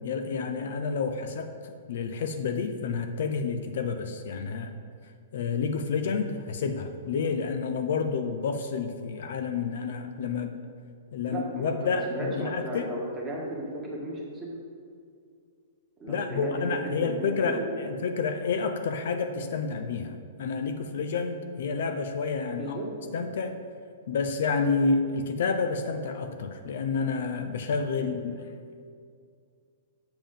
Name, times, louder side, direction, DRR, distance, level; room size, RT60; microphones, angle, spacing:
voice 1, 0.0-4.7 5.3-10.6 11.1-12.9 16.1-22.8 23.1-23.6 24.1-28.5, left 5 dB, 65° left, 7 dB, 0.5 m, -29 dB
voice 2, 11.3-14.5 16.0-16.5 16.8-17.7 18.0-18.1 22.6-22.9 28.0-28.1, right 1 dB, 10° right, -4 dB, 1.4 m, -35 dB
7.1 x 6.9 x 3.8 m, 2.2 s
hypercardioid pair, 160°, 0 cm